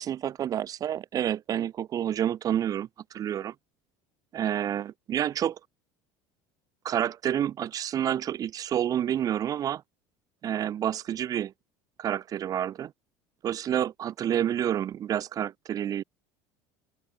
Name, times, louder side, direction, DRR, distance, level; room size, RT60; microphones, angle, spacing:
voice 1, 0.0-3.5 4.3-5.6 6.8-9.8 10.4-11.5 12.0-12.9 13.4-16.0, right 10 dB, 35° right, 3.3 m, -29 dB
cardioid pair, 145°, 10 cm